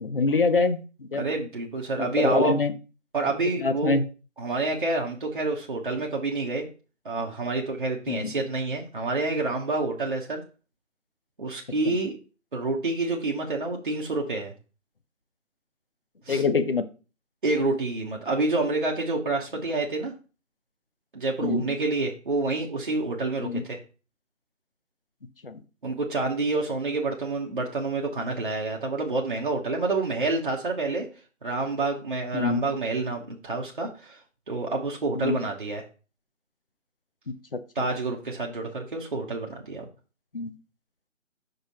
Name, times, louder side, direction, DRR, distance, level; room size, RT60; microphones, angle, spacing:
voice 1, 0.0-1.3 2.0-2.7 3.6-4.0 8.1-8.3 11.8-12.0 16.3-16.8 21.4-21.6 23.4-23.6 25.4-25.6 32.3-32.6 35.1-35.4 40.3-40.6, left 4 dB, 45° left, 11 dB, 0.7 m, -25 dB
voice 2, 1.1-2.5 3.1-4.0 4.4-6.7 7.0-10.4 11.4-12.1 12.5-14.5 16.3-16.4 17.4-20.1 21.1-23.8 25.8-31.1 31.4-34.2 34.5-35.8 37.7-39.9, right 3 dB, 40° right, -2 dB, 1.1 m, -28 dB
5.8 x 5.5 x 4.2 m, 0.34 s
figure-of-eight pair, 165°, 40 cm